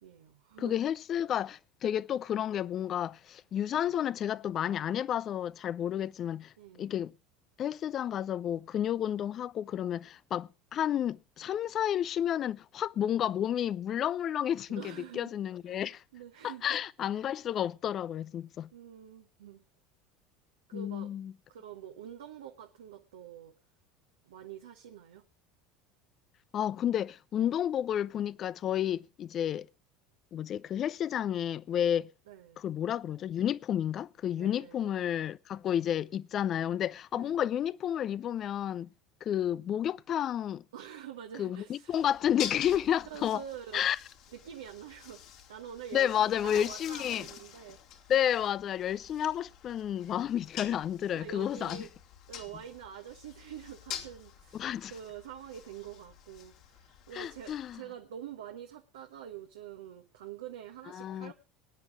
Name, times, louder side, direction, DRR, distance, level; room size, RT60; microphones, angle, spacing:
voice 1, 0.0-0.8 6.6-6.9 14.7-15.3 15.7-16.8 18.7-19.6 20.7-21.1 21.5-23.5 24.2-25.2 32.3-32.6 34.4-35.0 37.1-37.4 40.7-42.1 43.1-43.8 44.3-45.2 45.5-48.1 51.1-51.9 52.3-61.3, right 9 dB, 70° right, 1.2 m, -46 dB
voice 2, 0.6-6.5 6.8-7.1 7.6-16.0 16.4-18.7 20.7-21.3 26.5-29.7 30.3-32.1 32.6-38.9 39.2-40.6 41.4-43.4 43.7-44.0 45.9-47.3 48.1-51.8 54.5-54.9 57.1-57.8 60.9-61.3, left 10 dB, 40° left, 0.6 m, -31 dB
sound 1, 41.9-57.8, left 9 dB, 55° left, 2.7 m, -47 dB
21.5 x 9.8 x 3.6 m
figure-of-eight pair, 70°, 0 cm